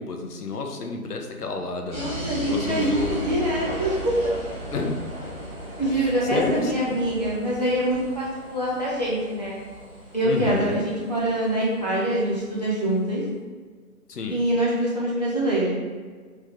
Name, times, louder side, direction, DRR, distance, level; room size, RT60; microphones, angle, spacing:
voice 1, 0.0-2.1 2.5-3.2 4.7-5.0 5.8-7.0 10.2-10.8 14.1-14.4, left 3 dB, 90° left, 3 dB, 0.8 m, -30 dB
voice 2, 1.9-4.1 5.8-9.6 10.1-13.2 14.3-15.7, right 1 dB, 30° left, -7 dB, 0.6 m, -25 dB
sound 1, 1.9-12.6, right 1 dB, ahead, 1.1 m, -36 dB
3.2 x 3.1 x 3.4 m, 1.5 s
hypercardioid pair, 170°, 45 cm